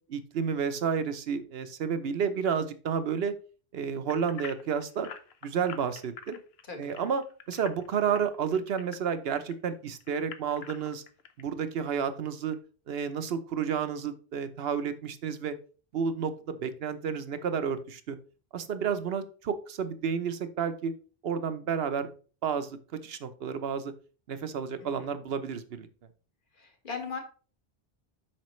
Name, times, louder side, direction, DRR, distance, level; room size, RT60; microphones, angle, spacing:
voice 1, 0.1-3.3 3.7-5.1 5.4-6.4 6.8-11.0 11.4-12.6 12.9-15.6 15.9-18.2 18.5-20.9 21.2-22.1 22.4-23.9 24.3-25.9, right 6 dB, 70° right, 11 dB, 1.0 m, -31 dB
sound 1, 4.1-9.5 10.0-11.4 11.9-12.0 12.5-12.6, left 6 dB, 75° left, 1.0 m, -46 dB
voice 2, 26.5-27.2, left 5 dB, 50° left, 4 dB, 1.7 m, -38 dB
8.7 x 6.0 x 3.1 m, 0.39 s
omnidirectional pair, 1.1 m